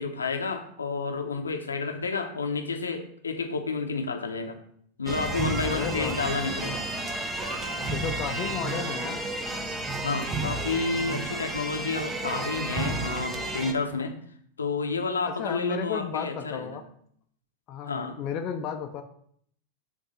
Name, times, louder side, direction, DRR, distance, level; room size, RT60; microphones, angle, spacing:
voice 1, 0.0-4.6 5.0-6.8 10.0-14.1 14.6-16.8 17.9-18.2, left 4 dB, 75° left, 4 dB, 0.8 m, -30 dB
sound 1, 5.1-13.7, right 2 dB, 15° right, 0.7 m, -31 dB
voice 2, 5.6-6.2 7.9-9.2 13.9-14.0 15.2-16.8 17.7-19.0, left 6 dB, 35° left, 4 dB, 0.6 m, -33 dB
6.6 x 2.7 x 5.5 m, 0.64 s
figure-of-eight pair, 90°, 0 cm